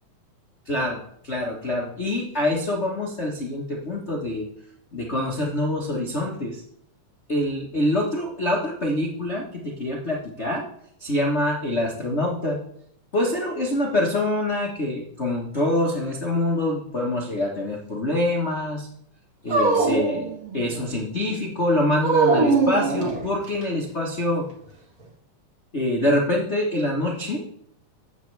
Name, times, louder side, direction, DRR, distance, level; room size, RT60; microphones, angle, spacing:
voice 1, 0.7-1.0 1.2-4.5 4.9-6.6 7.3-9.4 9.8-10.7 11.0-12.6 13.1-18.9 19.4-24.4 25.7-27.4, left 1 dB, 75° left, -3 dB, 0.6 m, -25 dB
Dog, 19.5-20.9 22.0-23.6, right 4 dB, 35° right, 1.6 m, -22 dB
13.0 x 8.5 x 3.3 m, 0.70 s
omnidirectional pair, 3.7 m